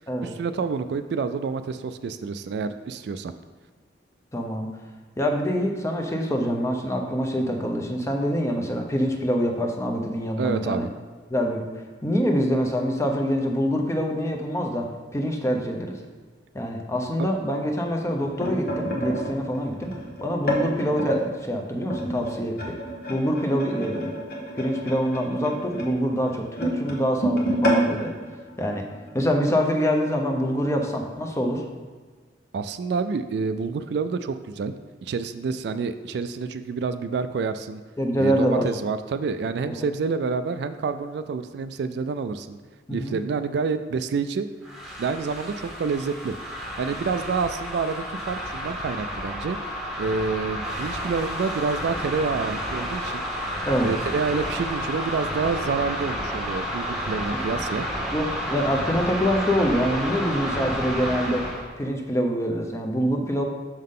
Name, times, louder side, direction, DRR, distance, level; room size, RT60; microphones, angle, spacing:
voice 1, 0.2-3.3 10.4-10.9 17.2-17.3 32.5-34.7 35.0-37.8 38.2-42.6 42.9-44.4 45.0-46.3 46.8-49.6 50.0-53.2 53.8-57.9, right 5 dB, 65° right, 10 dB, 0.3 m, -28 dB
voice 2, 4.3-4.7 5.2-10.9 11.3-11.6 12.0-16.0 16.5-19.9 20.2-22.8 23.1-24.2 24.6-28.1 28.6-28.9 29.1-31.6 38.0-38.7 39.7-39.8 42.9-43.2 53.7-53.9 57.3-57.4 58.1-61.4 61.8-63.4, equal, 15° left, 2 dB, 0.6 m, -25 dB
sound 1, 18.0-21.2 21.9-29.2 29.6-29.8 30.0-30.3 31.1-31.2, equal, 55° left, 1.1 m, -29 dB
sound 2, 44.6-61.6, equal, ahead, 1.1 m, -31 dB
6.4 x 5.7 x 3.6 m, 1.4 s
head